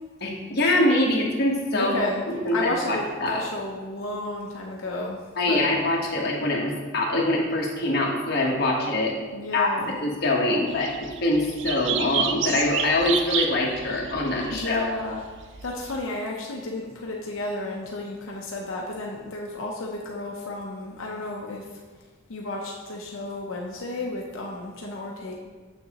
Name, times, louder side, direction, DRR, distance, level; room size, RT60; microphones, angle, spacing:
voice 1, 0.2-2.0 2.3-3.4 5.4-9.1 9.5-9.7 10.0-10.9 11.2-14.9, left 2 dB, 50° left, -2 dB, 1.2 m, -24 dB
voice 2, 1.7-2.2 2.5-5.2 5.5-5.7 9.3-10.0 14.5-15.2 15.6-21.8 22.3-25.4, left 2 dB, 85° left, -1 dB, 0.7 m, -32 dB
sound 1, 10.7-16.0, right 7 dB, 65° right, 0.5 m, -30 dB
7.3 x 6.5 x 2.9 m, 1.4 s
head